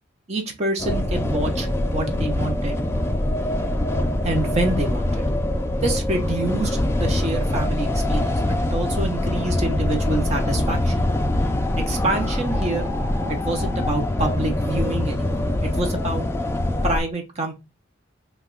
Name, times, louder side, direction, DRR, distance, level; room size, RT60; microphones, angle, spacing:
voice 1, 0.3-2.8 4.2-5.2 5.8-11.1 11.9-12.8 13.3-16.2 16.8-17.5, right 2 dB, 35° right, 3 dB, 0.6 m, -27 dB
sound 1, 0.8-17.0, left 1 dB, 15° left, 0.3 m, -23 dB
2.9 x 2.1 x 3.6 m, 0.25 s
head